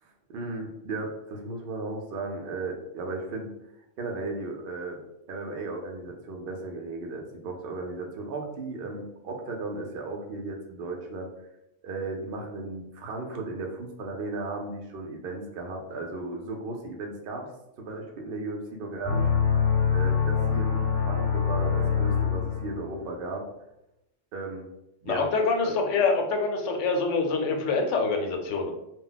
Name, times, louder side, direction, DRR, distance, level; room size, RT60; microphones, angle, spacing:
voice 1, 0.0-3.5 4.0-5.0 5.3-11.3 11.8-17.5 17.8-19.3 19.9-23.4 24.3-24.7 25.0-25.3 25.6-25.8, right 3 dB, 60° right, 1 dB, 0.7 m, -35 dB
sound 1, 19.0-22.9, left 6 dB, 35° right, 0.9 m, -24 dB
voice 2, 25.1-28.7, left 4 dB, 85° left, 3 dB, 0.9 m, -25 dB
2.2 x 2.0 x 3.8 m, 0.86 s
omnidirectional pair, 1.2 m